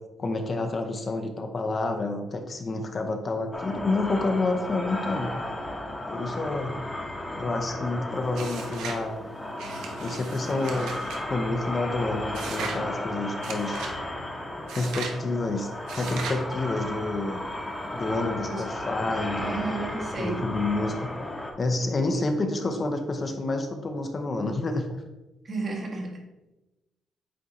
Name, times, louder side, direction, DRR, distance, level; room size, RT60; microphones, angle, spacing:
voice 1, 0.2-5.3 6.1-6.8 7.4-9.2 10.0-11.0 11.3-13.8 14.7-15.7 15.9-17.4 17.9-19.7 20.2-21.2 21.6-24.9, left 2 dB, 35° left, 5 dB, 0.7 m, -29 dB
sound 1, 3.5-21.5, left 1 dB, 10° left, 1.1 m, -34 dB
sound 2, 8.3-9.0 9.6-11.2 12.3-12.8 13.4-14.0 14.7-15.2 15.9-16.4, right 5 dB, 85° right, 0.8 m, -37 dB
voice 2, 19.4-20.5 25.4-26.2, right 3 dB, 40° right, 0 dB, 1.5 m, -32 dB
8.4 x 2.8 x 4.1 m, 1.0 s
cardioid pair, 90°, 0 cm